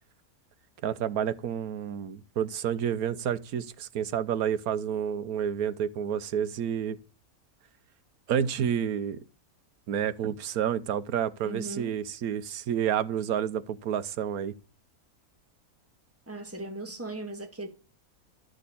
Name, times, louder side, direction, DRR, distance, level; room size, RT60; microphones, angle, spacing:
voice 1, 0.8-7.0 8.3-9.2 9.9-14.5, right 9 dB, 85° right, 1.3 m, -29 dB
voice 2, 11.4-12.0 16.3-17.7, right 2 dB, 10° right, 2.0 m, -38 dB
12.5 x 6.6 x 8.5 m
omnidirectional pair, 1.5 m